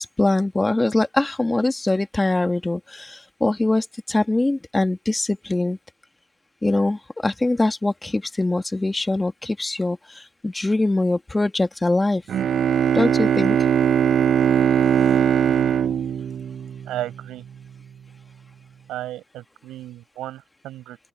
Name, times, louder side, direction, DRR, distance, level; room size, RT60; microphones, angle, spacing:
voice 1, 0.0-5.8 6.6-12.2 12.9-13.6, left 2 dB, 15° left, 2.1 m, -23 dB
Bowed string instrument, 12.3-17.2, right 8 dB, 60° right, 0.5 m, -20 dB
voice 2, 16.9-17.4 18.9-21.0, right 14 dB, 90° right, 7.4 m, -34 dB
open air
cardioid pair, 90°, 0 cm